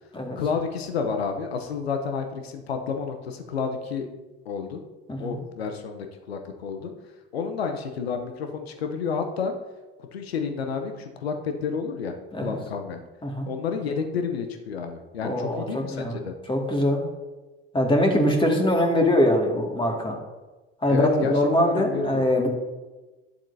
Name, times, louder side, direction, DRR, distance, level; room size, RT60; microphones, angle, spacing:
voice 1, 0.4-4.1 4.5-4.8 5.2-6.9 7.3-9.5 10.1-12.1 12.4-13.0 13.5-16.3 20.9-22.2, left 5 dB, 85° left, 5 dB, 0.8 m, -30 dB
voice 2, 15.2-16.2 16.5-17.0 17.7-20.2 20.8-22.5, left 1 dB, 15° left, 1 dB, 2.0 m, -23 dB
11.5 x 7.3 x 2.7 m, 1.2 s
hypercardioid pair, 65°, 30 cm